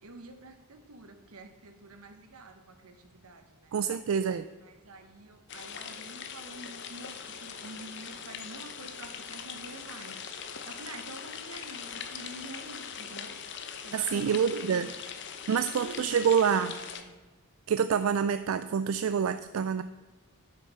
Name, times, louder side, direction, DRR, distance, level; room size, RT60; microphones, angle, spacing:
voice 1, 0.0-3.7 4.6-10.2 10.6-13.4 13.8-14.9 15.6-17.1, right 2 dB, 90° right, 7 dB, 1.2 m, -47 dB
voice 2, 3.7-4.4 13.9-14.9 15.5-16.7 17.7-19.8, right 7 dB, 70° right, 11 dB, 0.4 m, -27 dB
sound 1, 5.5-17.0, left 7 dB, 50° left, 0.8 m, -41 dB
10.0 x 6.7 x 5.5 m, 1.3 s
head